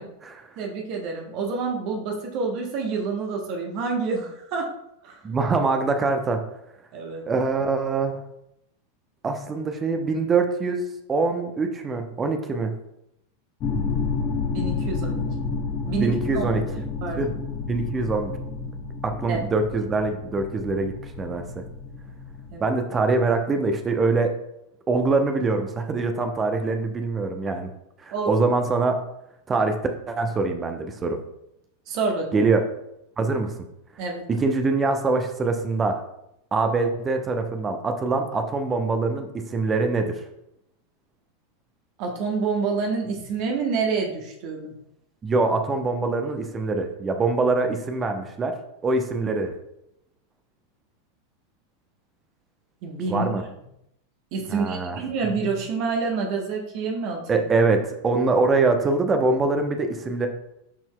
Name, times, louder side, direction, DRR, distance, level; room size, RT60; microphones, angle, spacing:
voice 1, 0.6-4.7 5.0-5.2 6.9-7.2 14.5-15.2 15.9-16.5 17.0-17.3 19.3-19.4 22.5-22.7 28.1-28.3 31.9-32.4 34.0-34.2 42.0-44.7 52.8-53.4 54.3-57.4, right 4 dB, 45° right, 1 dB, 1.1 m, -28 dB
voice 2, 5.2-6.4 7.3-8.2 9.2-10.8 11.1-12.7 16.0-16.6 17.2-17.3 17.7-18.3 19.0-21.4 22.6-24.3 24.9-27.7 28.0-29.0 29.5-29.8 30.1-31.2 32.3-32.6 33.2-33.5 34.3-36.0 36.5-40.1 45.2-48.5 48.8-49.6 53.1-53.4 54.5-55.0 57.3-60.3, right 3 dB, 20° right, 6 dB, 0.8 m, -24 dB
sound 1, 13.6-22.6, left 4 dB, 35° left, 1.3 m, -30 dB
11.5 x 4.4 x 2.3 m, 0.80 s
figure-of-eight pair, 90°, 0 cm